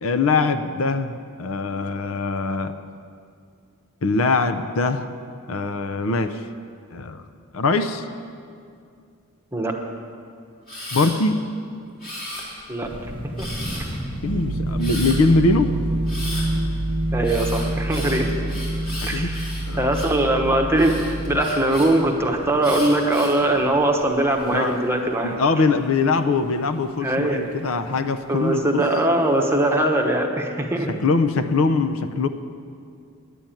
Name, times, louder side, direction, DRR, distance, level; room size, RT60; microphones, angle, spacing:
voice 1, 0.0-2.7 4.0-5.1 5.5-6.4 6.9-7.2 7.5-8.0 10.9-11.4 14.2-15.7 18.1-18.5 19.0-19.3 19.7-19.8 24.5-24.8 25.2-28.8 30.9-32.3, left 3 dB, 65° left, 10 dB, 0.6 m, -22 dB
Camera, 10.7-11.1 12.0-12.8 13.4-14.0 14.8-15.2 16.1-16.5 17.2-20.2 20.8-21.9 22.6-23.4 24.0-24.5, left 1 dB, 40° left, 3.7 m, -35 dB
sound 1, 12.8-29.8, equal, 25° left, 1.1 m, -39 dB
sound 2, 14.3-21.4, right 1 dB, 55° right, 0.9 m, -26 dB
voice 2, 17.1-18.3 19.1-19.4 19.8-21.0 21.3-25.4 27.0-27.4 28.3-31.0, right 1 dB, 10° right, 2 dB, 1.0 m, -21 dB
10.5 x 8.5 x 9.0 m, 2.3 s
head